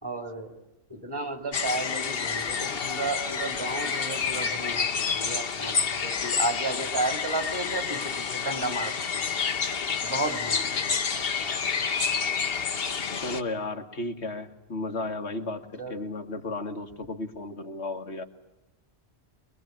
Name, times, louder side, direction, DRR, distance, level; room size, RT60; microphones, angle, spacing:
voice 1, 0.0-0.5 0.9-8.9 9.2-9.6 10.0-11.3 15.8-16.0, right 2 dB, 20° right, 7 dB, 2.5 m, -33 dB
sound 1, 1.5-13.4, left 6 dB, 60° left, 1.3 m, -29 dB
voice 2, 13.1-18.2, left 2 dB, 80° left, 4 dB, 2.0 m, -34 dB
23.0 x 22.0 x 9.2 m, 0.94 s
omnidirectional pair, 1.1 m